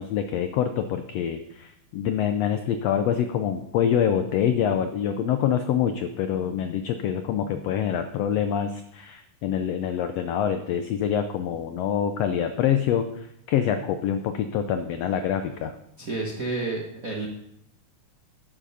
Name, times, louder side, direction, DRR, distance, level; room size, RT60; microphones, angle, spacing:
voice 1, 0.0-15.7, left 9 dB, 85° left, 8 dB, 1.4 m, -26 dB
voice 2, 16.0-17.3, right 3 dB, 55° right, -2 dB, 0.9 m, -30 dB
11.5 x 7.6 x 5.5 m, 0.78 s
omnidirectional pair, 3.7 m